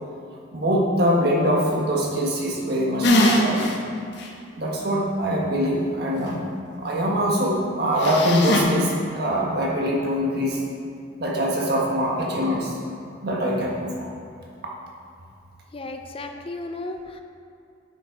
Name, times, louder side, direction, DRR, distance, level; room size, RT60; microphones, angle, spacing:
voice 1, 0.5-3.6 4.6-6.4 6.8-10.6 11.2-12.7 13.2-14.1, equal, 55° right, -2 dB, 1.5 m, -23 dB
sound 1, 3.0-3.7 4.2-4.3 8.0-8.6, left 1 dB, 65° left, 1.0 m, -20 dB
voice 2, 15.7-17.2, left 2 dB, 30° left, 5 dB, 0.4 m, -34 dB
9.1 x 6.1 x 4.2 m, 2.4 s
head